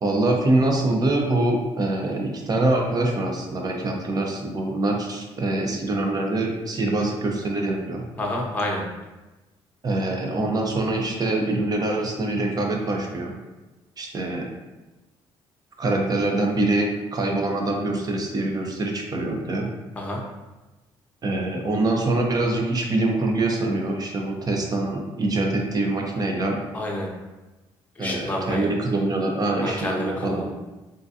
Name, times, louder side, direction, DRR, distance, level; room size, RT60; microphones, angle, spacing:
voice 1, 0.0-8.0 9.8-13.3 14.0-14.5 15.8-19.7 21.2-26.6 28.0-30.5, right 2 dB, 35° right, 1 dB, 0.7 m, -24 dB
voice 2, 8.2-8.8 20.0-20.2 26.7-27.1 28.0-28.7 29.6-30.6, left 1 dB, 15° left, -1 dB, 0.7 m, -28 dB
3.7 x 2.5 x 2.7 m, 1.1 s
cardioid pair, 80°, 11 cm